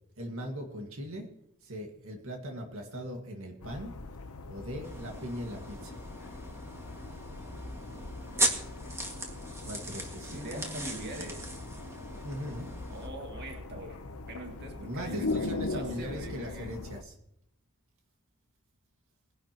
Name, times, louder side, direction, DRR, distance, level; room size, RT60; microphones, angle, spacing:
voice 1, 0.2-1.3 1.6-3.9 4.5-6.0 9.6-10.5 12.2-12.7 14.8-17.2, equal, 65° right, 2 dB, 1.9 m, -39 dB
sound 1, 3.6-17.0, left 3 dB, 80° left, 0.9 m, -40 dB
sound 2, 4.8-13.1, right 1 dB, 15° right, 1.9 m, -37 dB
voice 2, 10.3-11.5 12.9-14.0 14.3-16.7, right 1 dB, 50° right, 3 dB, 2.0 m, -42 dB
21.0 x 11.0 x 3.0 m, 0.78 s
head